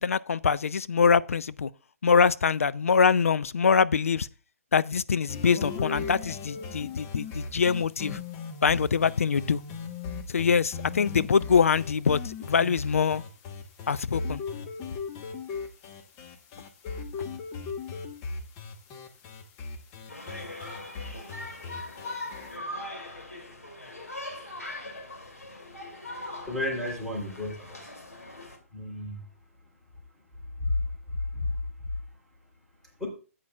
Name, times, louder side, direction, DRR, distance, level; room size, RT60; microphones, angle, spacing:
voice 1, 0.0-1.7 2.0-4.3 4.7-8.2 8.6-9.6 10.3-13.2 13.9-14.4, left 6 dB, 65° left, 0.4 m, -24 dB
sound 1, 5.3-22.5, left 4 dB, 25° left, 1.1 m, -38 dB
sound 2, 20.1-28.6, left 1 dB, 85° left, 2.5 m, -40 dB
voice 2, 26.5-27.8 28.7-29.2 30.6-30.7 31.3-31.5 33.0-33.1, left 2 dB, ahead, 3.4 m, -32 dB
13.5 x 8.6 x 2.4 m
figure-of-eight pair, 130°, 8 cm